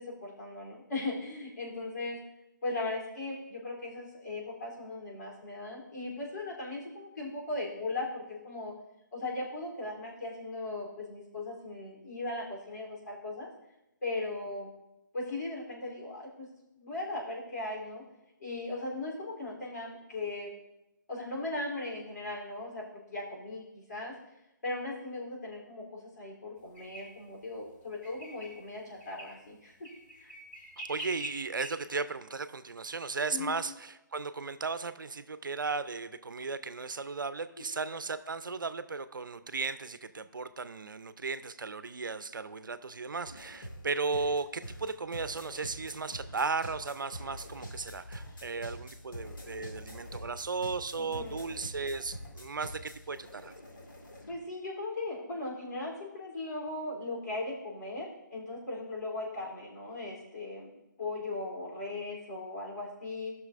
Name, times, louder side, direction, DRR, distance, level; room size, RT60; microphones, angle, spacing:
voice 1, 0.0-2.2 2.6-8.7 9.1-13.5 14.0-14.7 15.1-16.5 16.7-18.0 18.4-20.5 21.1-24.1 24.6-29.7 30.2-30.3 33.3-33.6 50.9-51.4 54.3-60.7 61.0-63.3, left 2 dB, 60° left, -3 dB, 3.3 m, -38 dB
sound 1, 26.7-27.1 28.0-28.6 29.0-29.3 29.8-31.7, right 1 dB, 10° left, 1.4 m, -44 dB
voice 2, 30.8-53.5, right 4 dB, 80° right, 13 dB, 0.6 m, -36 dB
sound 2, 43.3-54.4, equal, 85° left, 2.0 m, -45 dB
18.0 x 6.2 x 2.5 m, 0.95 s
figure-of-eight pair, 155°, 11 cm